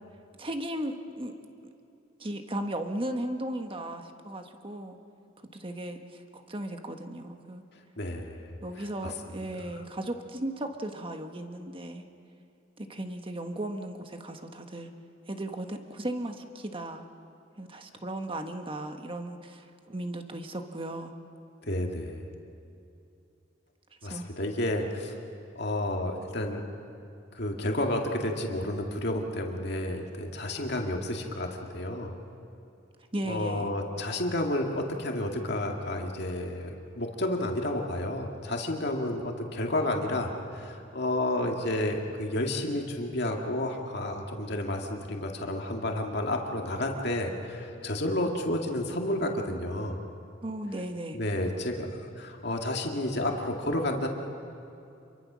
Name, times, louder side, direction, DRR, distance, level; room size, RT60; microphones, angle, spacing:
voice 1, 0.4-1.3 2.2-5.0 5.5-7.6 8.6-12.0 12.8-14.9 15.3-17.0 17.6-21.1 24.0-24.2 33.1-33.7 50.4-51.2, right 1 dB, 25° right, 5 dB, 1.4 m, -36 dB
voice 2, 8.0-9.1 21.6-22.3 24.0-25.2 25.6-26.6 27.3-31.5 31.7-32.1 33.3-50.0 51.1-51.9 52.2-54.1, left 1 dB, 60° left, 1 dB, 2.2 m, -31 dB
28.0 x 23.0 x 6.3 m, 2.7 s
head